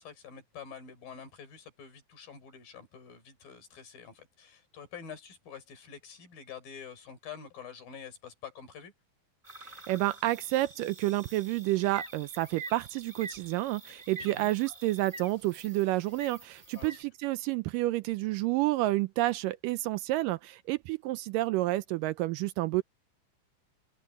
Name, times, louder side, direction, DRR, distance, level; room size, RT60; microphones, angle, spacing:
voice 1, 0.0-8.9 14.2-14.5 16.7-16.9, left 7 dB, 75° left, 5.6 m, -47 dB
sound 1, 9.4-17.0, right 3 dB, 10° right, 2.7 m, -47 dB
voice 2, 9.6-22.8, right 17 dB, 80° right, 2.1 m, -30 dB
open air
omnidirectional pair, 4.1 m